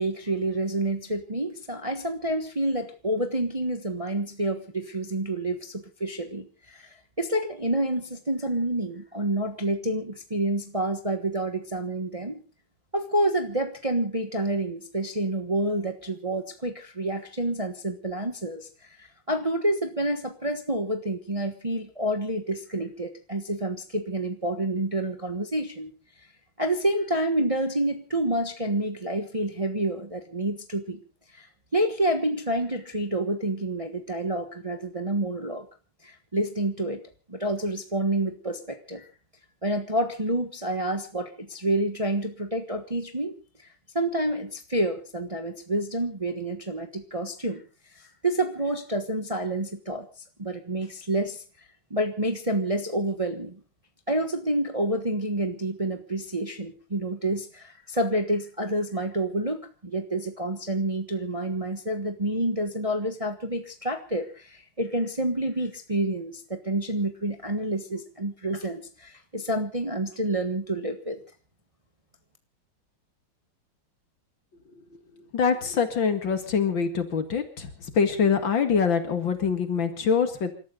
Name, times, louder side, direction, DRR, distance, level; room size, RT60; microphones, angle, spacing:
voice 1, 0.0-12.4 12.9-18.7 19.0-25.9 26.6-31.0 31.3-31.5 31.7-35.7 36.0-37.0 37.3-39.1 39.6-43.7 43.9-47.6 47.9-50.1 50.4-51.4 51.9-53.6 54.1-71.2, right 1 dB, 20° right, 7 dB, 1.1 m, -28 dB
voice 2, 75.3-80.5, left 6 dB, 65° left, 8 dB, 2.7 m, -24 dB
28.5 x 13.0 x 3.8 m, 0.34 s
omnidirectional pair, 2.3 m